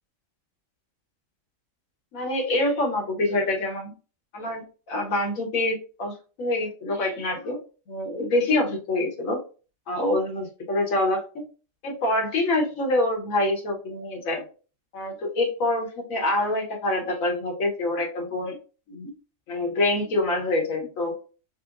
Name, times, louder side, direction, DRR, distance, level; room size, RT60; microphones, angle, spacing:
voice 1, 2.1-3.9 4.3-7.6 7.9-9.4 9.9-11.4 11.8-14.4 14.9-18.6 18.9-19.1 19.5-21.2, left 2 dB, 75° left, 2 dB, 1.4 m, -26 dB
6.0 x 2.1 x 2.4 m, 0.35 s
omnidirectional pair, 1.4 m